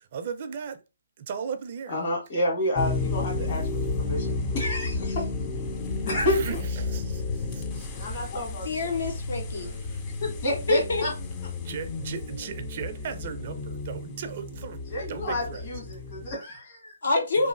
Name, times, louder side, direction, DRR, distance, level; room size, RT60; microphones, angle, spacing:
voice 1, 0.1-0.8 1.2-2.0 6.1-7.0 7.7-8.1 9.8-10.3 11.6-15.6 17.4-17.5, right 6 dB, 40° right, 0.4 m, -36 dB
voice 2, 1.9-5.3 6.0-6.4 8.0-9.0 10.2-11.1 14.9-16.9, left 1 dB, 45° left, 1.5 m, -30 dB
sound 1, 2.8-16.3, left 3 dB, 20° left, 0.4 m, -32 dB
voice 3, 8.6-9.7 10.5-11.0 17.0-17.5, left 3 dB, 65° left, 0.6 m, -26 dB
3.0 x 2.4 x 2.4 m
hypercardioid pair, 145°, 0 cm